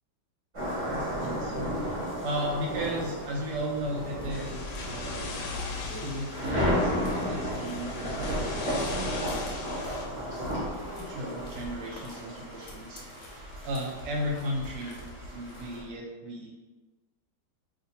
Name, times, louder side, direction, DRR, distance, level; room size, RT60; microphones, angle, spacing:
sound 1, 0.5-15.8, equal, 35° right, 0.5 m, -34 dB
voice 1, 1.2-1.6 2.2-5.6 5.8-9.4 9.8-10.5 10.9-15.0 15.3-16.5, equal, 75° right, -1 dB, 1.1 m, -36 dB
sound 2, 4.1-16.0, left 1 dB, 65° left, 0.9 m, -47 dB
sound 3, 4.3-10.1, left 3 dB, 80° left, 1.2 m, -38 dB
2.7 x 2.5 x 4.0 m, 1.2 s
omnidirectional pair, 2.0 m